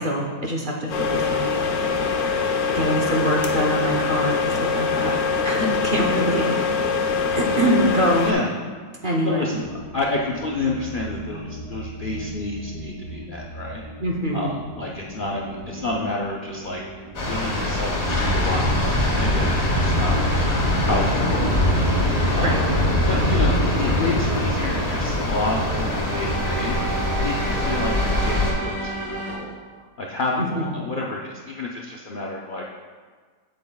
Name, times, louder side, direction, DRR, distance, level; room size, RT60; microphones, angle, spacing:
voice 1, 0.0-1.5 2.7-5.2 5.4-6.5 7.3-8.3 9.0-9.5 14.0-14.5 22.4-22.6 30.5-30.7, right 1 dB, 45° right, -1 dB, 0.7 m, -24 dB
sound 1, 0.9-8.3, left 5 dB, 70° left, 1.2 m, -23 dB
voice 2, 9.0-9.6 9.9-13.8 14.3-16.8 17.2-20.2 20.8-21.9 22.3-22.6 23.1-26.8 27.2-29.6 30.0-32.6, left 2 dB, 90° left, -2 dB, 0.4 m, -29 dB
sound 2, 9.5-29.3, right 2 dB, 75° right, 3.0 m, -35 dB
sound 3, 17.1-28.5, left 1 dB, 35° left, 1.3 m, -22 dB
8.5 x 7.8 x 2.3 m, 1.5 s
omnidirectional pair, 1.7 m